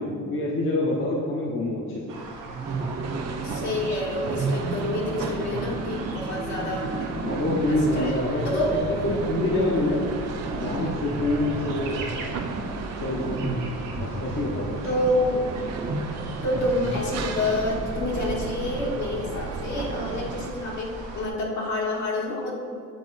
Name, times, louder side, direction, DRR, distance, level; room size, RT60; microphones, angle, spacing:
voice 1, 0.0-2.2 6.9-10.0 10.6-12.0 13.0-13.6 14.0-14.8, left 2 dB, 45° left, -3 dB, 1.1 m, -26 dB
sound 1, 2.1-21.3, right 2 dB, 90° right, 1.1 m, -39 dB
sound 2, 2.5-3.8 4.2-18.1, right 2 dB, 25° right, 0.9 m, -34 dB
sound 3, 2.6-20.5, right 5 dB, 60° right, 0.6 m, -35 dB
voice 2, 3.4-7.1 7.7-8.8 10.8-10.9 14.8-15.4 16.4-22.6, left 1 dB, 70° left, -3 dB, 1.8 m, -28 dB
8.0 x 4.2 x 4.0 m, 2.2 s
cardioid pair, 90°, 30 cm